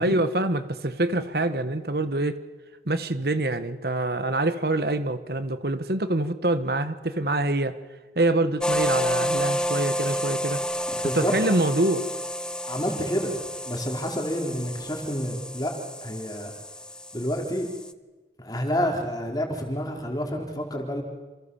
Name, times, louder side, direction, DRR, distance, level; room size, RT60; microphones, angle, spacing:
voice 1, 0.0-2.4 2.9-7.7 8.1-10.6 11.0-12.1, right 2 dB, 60° right, 11 dB, 1.4 m, -25 dB
sound 1, 8.6-17.9, equal, 5° left, 0.8 m, -30 dB
voice 2, 11.0-11.5 12.7-13.3 13.6-15.7 16.0-16.5 17.1-17.7 18.4-21.0, equal, 20° left, 2 dB, 4.2 m, -28 dB
28.0 x 28.0 x 7.2 m, 1.2 s
head